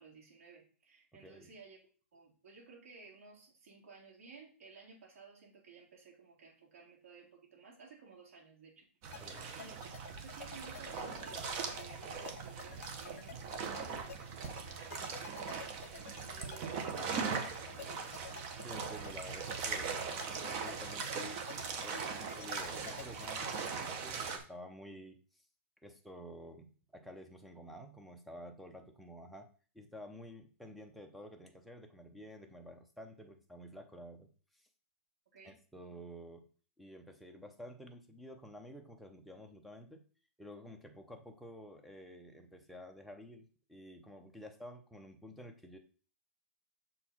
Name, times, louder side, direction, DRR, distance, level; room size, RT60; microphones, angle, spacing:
voice 1, 0.0-1.8 2.1-8.8 9.1-18.0 35.3-35.5, right 4 dB, 75° right, -2 dB, 3.5 m, -56 dB
voice 2, 1.2-1.5 9.2-9.4 18.6-21.4 21.8-25.4 25.8-29.5 29.7-34.7 35.4-36.5 36.8-40.0 40.4-45.8, equal, ahead, 2 dB, 0.6 m, -51 dB
sound 1, 9.0-24.4, right 5 dB, 30° right, 0.9 m, -40 dB
sound 2, 9.1-23.8, left 8 dB, 80° left, 0.7 m, -50 dB
6.6 x 4.6 x 4.3 m, 0.40 s
hypercardioid pair, 170°, 8 cm